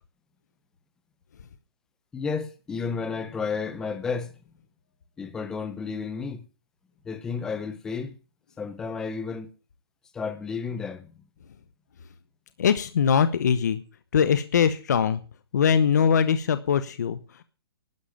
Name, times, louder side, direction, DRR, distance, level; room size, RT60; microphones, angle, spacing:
voice 1, 2.1-4.3 5.2-6.4 7.0-8.2 8.6-9.5 10.1-11.1, left 5 dB, 5° left, 0.7 m, -32 dB
voice 2, 12.6-13.8 14.1-15.2 15.5-17.2, left 7 dB, 45° left, 0.9 m, -22 dB
12.0 x 11.0 x 7.3 m
hypercardioid pair, 180°, 13 cm